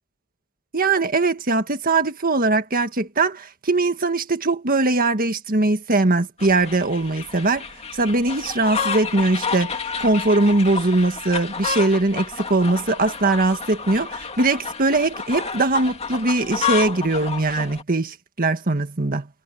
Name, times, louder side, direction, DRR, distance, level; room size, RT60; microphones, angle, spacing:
voice 1, 0.7-7.6 7.9-19.3, right 2 dB, 45° right, 1.7 m, -21 dB
sound 1, 6.4-17.8, left 6 dB, 30° left, 2.4 m, -30 dB
head